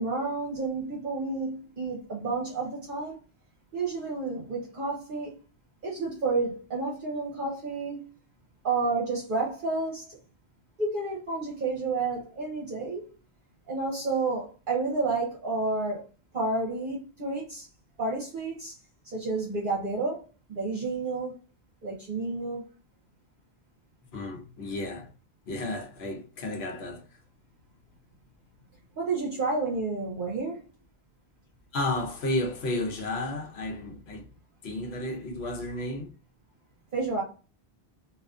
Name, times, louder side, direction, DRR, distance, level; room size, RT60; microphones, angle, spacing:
voice 1, 0.0-3.2 3.7-5.4 5.8-8.1 8.6-10.2 10.8-13.1 13.7-16.0 16.3-17.7 18.0-18.8 19.0-20.2 20.5-21.3 21.8-22.7 29.0-30.6 36.9-37.2, right 3 dB, 55° right, 0.8 m, -30 dB
voice 2, 24.1-25.1 25.5-27.2 31.7-34.3 34.6-36.1, left 2 dB, 80° left, 0.9 m, -32 dB
2.4 x 2.4 x 2.3 m
omnidirectional pair, 1.1 m